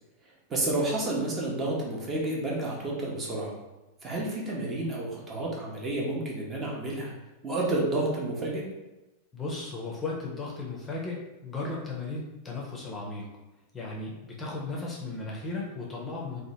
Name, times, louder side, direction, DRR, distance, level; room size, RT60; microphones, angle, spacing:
voice 1, 0.5-3.5 4.0-7.1 7.4-8.6, right 2 dB, 25° right, -3 dB, 0.7 m, -30 dB
voice 2, 9.3-13.3 13.7-16.4, left 3 dB, 20° left, -3 dB, 0.6 m, -35 dB
2.9 x 2.2 x 2.8 m, 1.0 s
figure-of-eight pair, 90°, 0 cm